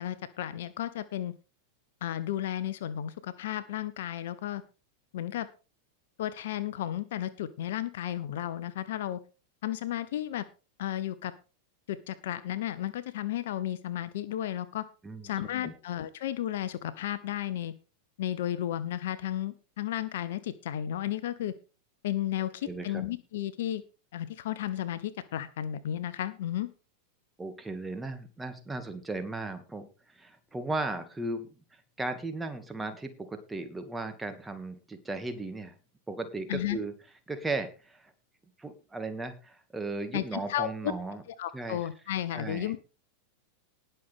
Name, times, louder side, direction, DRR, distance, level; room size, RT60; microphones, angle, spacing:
voice 1, 0.0-1.3 2.0-4.6 5.1-5.5 6.2-9.2 9.6-10.4 10.8-11.3 11.9-14.8 15.2-17.7 18.2-21.5 22.0-23.8 24.1-26.7 36.5-36.8 40.1-40.9 41.4-42.8, left 12 dB, 55° left, 16 dB, 0.9 m, -33 dB
voice 2, 15.0-15.7 22.7-23.0 27.4-31.5 32.0-35.7 36.1-36.9 37.3-38.1 38.6-41.2 41.5-41.8 42.3-42.7, right 2 dB, 10° right, 7 dB, 2.3 m, -36 dB
19.5 x 6.7 x 3.7 m, 0.33 s
figure-of-eight pair, 90°, 0 cm